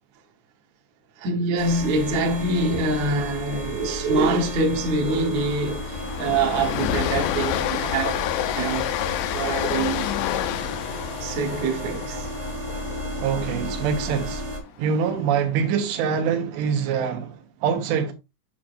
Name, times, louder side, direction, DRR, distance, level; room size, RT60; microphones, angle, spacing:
voice 1, 1.2-8.2 8.6-8.9 9.3-10.1 11.2-12.3, right 2 dB, 60° right, 1.9 m, -25 dB
sound 1, 1.6-14.6, equal, 30° right, 1.1 m, -34 dB
Train, 3.3-3.6 3.9-4.0 4.4-14.5, left 12 dB, 85° left, 2.9 m, -29 dB
voice 2, 13.2-14.5 14.8-18.1, right 7 dB, 90° right, 3.3 m, -24 dB
8.6 x 6.1 x 2.5 m
omnidirectional pair, 4.9 m